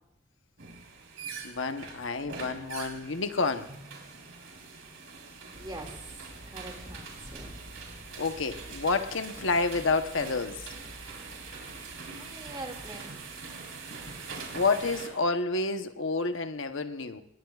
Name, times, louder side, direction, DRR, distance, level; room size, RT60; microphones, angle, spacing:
sound 1, 0.6-15.1, right 4 dB, 85° right, 4.2 m, -44 dB
voice 1, 1.4-3.7 8.2-10.7 14.5-17.2, left 3 dB, 75° left, 7 dB, 1.0 m, -29 dB
Drum, 3.7-5.9, equal, 55° right, 2.8 m, -56 dB
voice 2, 5.4-6.1 6.5-7.6 12.2-13.2, right 2 dB, 25° right, 2 dB, 2.3 m, -43 dB
sound 2, 5.5-13.6, equal, 45° left, 2.0 m, -51 dB
27.5 x 21.0 x 2.4 m, 0.83 s
head